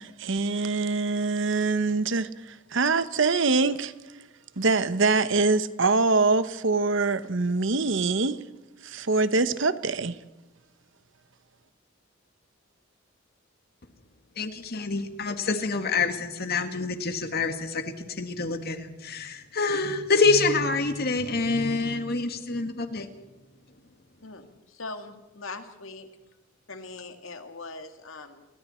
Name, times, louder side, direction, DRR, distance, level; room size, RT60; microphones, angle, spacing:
voice 1, 0.0-3.9 4.6-8.4 8.8-10.2, right 3 dB, 65° right, 13 dB, 1.0 m, -24 dB
voice 2, 14.4-23.1, left 3 dB, 50° left, 7 dB, 2.0 m, -26 dB
voice 3, 24.2-26.1 26.7-28.5, left 3 dB, 80° left, 6 dB, 2.2 m, -41 dB
30.0 x 23.5 x 4.4 m, 1.0 s
head